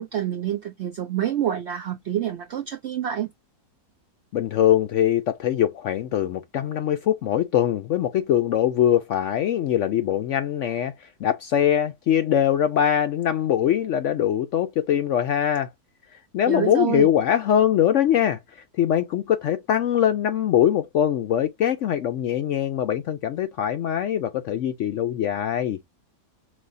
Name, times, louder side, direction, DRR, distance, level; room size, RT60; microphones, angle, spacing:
voice 1, 0.0-3.3 16.5-17.1, right 10 dB, 75° right, 0.6 m, -27 dB
voice 2, 4.3-10.9 11.2-15.7 16.3-18.4 18.8-25.8, left 10 dB, 70° left, 0.7 m, -22 dB
5.3 x 3.0 x 2.6 m
omnidirectional pair, 1.7 m